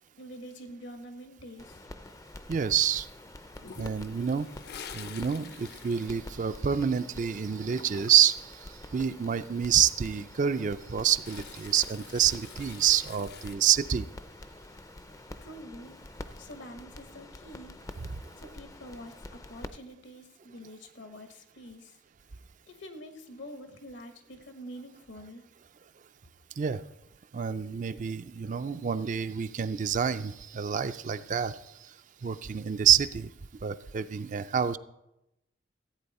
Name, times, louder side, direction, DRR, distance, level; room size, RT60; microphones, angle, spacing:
voice 1, 0.2-1.9 15.4-16.0 16.4-17.8 18.4-22.0 22.7-25.4, equal, 75° left, 7 dB, 1.3 m, -46 dB
sound 1, 1.6-19.7, left 2 dB, 20° left, 0.4 m, -47 dB
voice 2, 2.5-3.1 3.8-4.5 4.9-8.6 8.9-14.1 26.6-26.8 27.3-31.6 32.2-33.3 33.6-34.8, right 8 dB, 40° right, 12 dB, 0.4 m, -27 dB
Toilet flush, 3.5-7.0 7.3-8.5 10.5-13.6, left 7 dB, 55° left, 0.7 m, -48 dB
14.5 x 8.6 x 4.2 m, 0.90 s
head